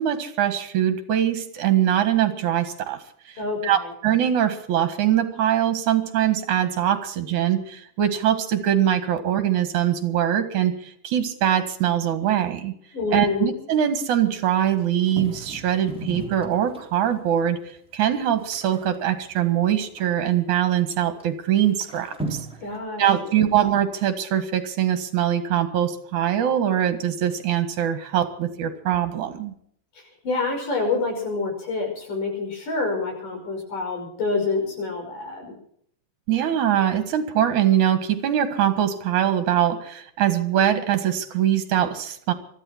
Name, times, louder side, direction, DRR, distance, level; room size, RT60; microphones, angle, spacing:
voice 1, 0.0-3.0 3.3-3.4 3.6-12.8 13.1-22.5 23.0-29.6 36.3-42.3, right 10 dB, 70° right, 9 dB, 3.1 m, -22 dB
voice 2, 3.4-3.9 12.9-13.5 22.6-23.4 30.0-35.5, left 3 dB, 85° left, 2 dB, 7.1 m, -27 dB
sound 1, 14.6-17.2 17.7-17.8 18.0-20.2 20.7-20.8 21.2-21.3 21.7-22.8, right 2 dB, ahead, 3.0 m, -36 dB
23.5 x 13.5 x 4.4 m, 0.65 s
omnidirectional pair, 3.6 m